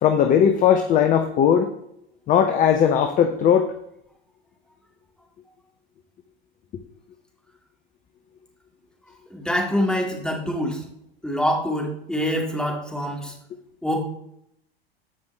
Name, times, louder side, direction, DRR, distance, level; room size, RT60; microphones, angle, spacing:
voice 1, 0.0-1.7 2.3-3.7, left 8 dB, 25° left, 7 dB, 0.7 m, -18 dB
voice 2, 9.3-10.8 11.2-13.3 13.8-14.0, equal, ahead, -1 dB, 2.2 m, -25 dB
15.0 x 5.2 x 3.3 m, 0.76 s
figure-of-eight pair, 80°, 31 cm